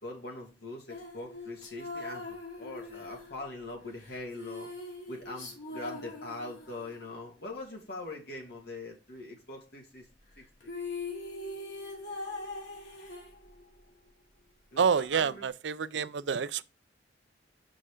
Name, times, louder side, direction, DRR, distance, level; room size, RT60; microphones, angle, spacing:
voice 1, 0.0-4.7 5.1-10.1 10.4-10.7 14.7-15.5 15.9-16.1, left 2 dB, 60° left, 2.7 m, -42 dB
sound 1, 0.9-7.1 10.3-10.4 10.6-13.8, left 3 dB, 80° left, 2.7 m, -42 dB
voice 2, 14.8-16.6, right 6 dB, 70° right, 0.5 m, -28 dB
6.3 x 5.5 x 5.0 m
head